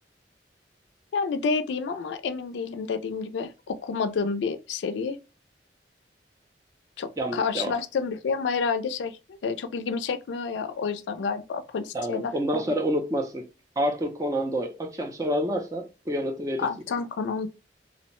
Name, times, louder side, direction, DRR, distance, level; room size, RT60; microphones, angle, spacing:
voice 1, 1.1-5.2 7.0-12.3 16.6-17.5, left 5 dB, 80° left, 0.3 m, -29 dB
voice 2, 7.2-7.7 11.9-13.4 13.8-16.7, equal, 20° right, 0.4 m, -28 dB
2.5 x 2.0 x 2.9 m
head